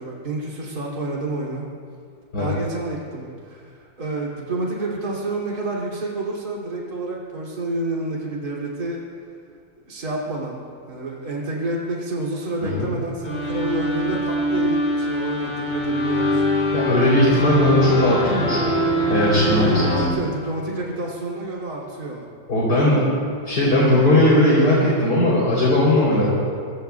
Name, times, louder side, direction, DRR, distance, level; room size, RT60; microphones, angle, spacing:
voice 1, 0.0-1.7 2.3-9.0 9.9-10.6 10.9-16.4 19.5-22.3, right 2 dB, 50° right, -5 dB, 3.3 m, -29 dB
sound 1, 13.2-20.1, left 1 dB, 35° left, 4.4 m, -23 dB
voice 2, 16.7-18.8 19.1-19.7 22.5-23.2 23.4-26.3, left 1 dB, 55° left, -7 dB, 4.0 m, -18 dB
25.0 x 23.5 x 2.3 m, 2.3 s
omnidirectional pair, 2.1 m